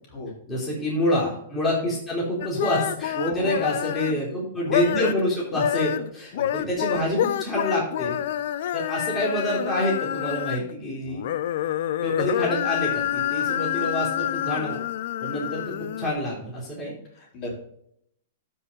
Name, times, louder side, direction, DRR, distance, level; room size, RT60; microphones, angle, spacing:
voice 1, 0.5-8.2 8.7-11.2 12.0-14.8 15.2-16.9, left 1 dB, 15° left, -6 dB, 3.5 m, -27 dB
sound 1, 2.4-4.2 4.6-5.2 5.5-10.7 11.1-16.1, left 11 dB, 65° left, 0.5 m, -27 dB
voice 2, 3.1-3.7 6.3-6.4 17.2-17.6, left 1 dB, 40° left, -2 dB, 4.3 m, -32 dB
12.0 x 5.6 x 4.1 m, 0.71 s
hypercardioid pair, 125°, 0 cm